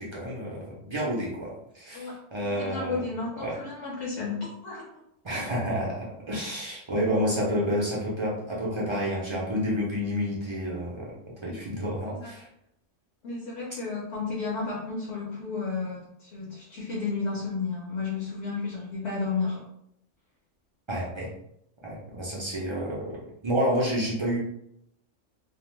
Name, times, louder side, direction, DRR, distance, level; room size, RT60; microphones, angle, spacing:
voice 1, 0.0-3.0 3.4-3.6 5.2-11.1 11.4-12.5 20.9-21.3 21.8-24.4, equal, 50° right, -5 dB, 0.3 m, -29 dB
voice 2, 1.9-4.8 12.0-12.3 13.2-19.6, left 4 dB, 65° left, -5 dB, 0.9 m, -32 dB
2.5 x 2.1 x 3.0 m, 0.76 s
omnidirectional pair, 1.3 m